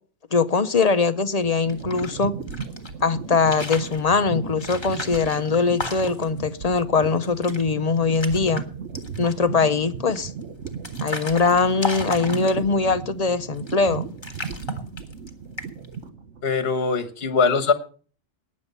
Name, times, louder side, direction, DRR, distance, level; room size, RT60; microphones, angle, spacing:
voice 1, 0.3-2.4 3.0-8.6 9.2-10.3 11.0-14.0, left 4 dB, 40° left, 0.7 m, -22 dB
sound 1, 1.0-16.5, right 6 dB, 90° right, 1.4 m, -36 dB
sound 2, 1.6-2.9 3.3-4.0 4.6-6.4 6.8-6.9 7.1-7.6 7.9-8.6 8.9-9.5 10.1-12.9 13.5-13.9 14.2-15.3 15.6-15.9, left 2 dB, 25° left, 1.6 m, -34 dB
voice 2, 16.4-17.7, left 5 dB, 60° left, 1.3 m, -21 dB
18.5 x 7.5 x 5.4 m
omnidirectional pair, 1.2 m